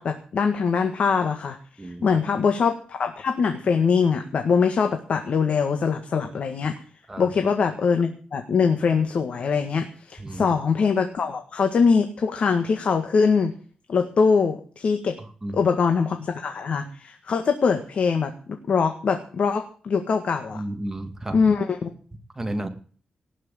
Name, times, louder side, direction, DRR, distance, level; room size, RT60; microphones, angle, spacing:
voice 1, 0.0-1.6 1.8-6.7 7.2-13.5 13.9-15.2 15.5-20.6 21.3-21.9, left 5 dB, 60° left, 6 dB, 1.7 m, -23 dB
voice 2, 20.5-21.4 22.4-22.7, right 1 dB, 15° right, 6 dB, 2.1 m, -32 dB
18.5 x 6.3 x 8.9 m, 0.43 s
wide cardioid pair, 130°, 2 cm